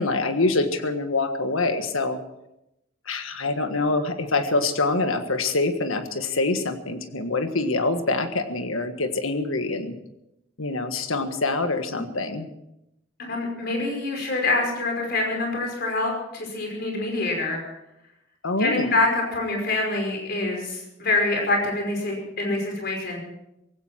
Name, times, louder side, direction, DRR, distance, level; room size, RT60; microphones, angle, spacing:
voice 1, 0.0-2.2 3.1-9.9 10.6-12.5 18.4-18.9, left 3 dB, 80° left, 8 dB, 1.6 m, -25 dB
voice 2, 13.3-17.6 18.6-23.2, left 2 dB, 50° left, 1 dB, 5.4 m, -25 dB
18.0 x 16.5 x 4.5 m, 0.87 s
head